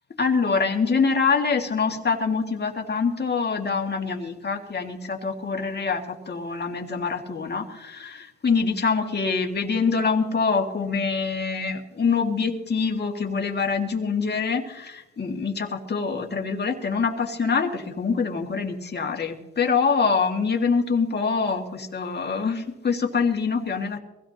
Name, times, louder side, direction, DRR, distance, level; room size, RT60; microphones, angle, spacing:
voice 1, 0.2-24.0, left 5 dB, 35° left, 2 dB, 2.1 m, -25 dB
23.0 x 16.5 x 2.9 m, 0.98 s
cardioid pair, 90°, 30 cm